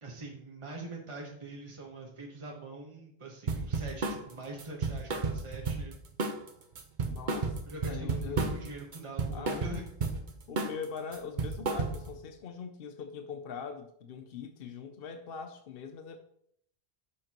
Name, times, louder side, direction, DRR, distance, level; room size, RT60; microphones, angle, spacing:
voice 1, 0.0-6.0 7.7-9.8, right 2 dB, 30° right, 1.3 m, -44 dB
sound 1, 3.5-4.2 4.6-5.9 6.2-6.5 6.8-8.7 8.9-10.2 10.6-10.8 11.1-12.2, right 4 dB, 50° right, 1.1 m, -32 dB
voice 2, 7.1-7.6 7.9-8.7 9.3-9.9 10.5-16.2, left 6 dB, 65° left, 0.9 m, -42 dB
10.0 x 6.8 x 3.0 m
omnidirectional pair, 1.0 m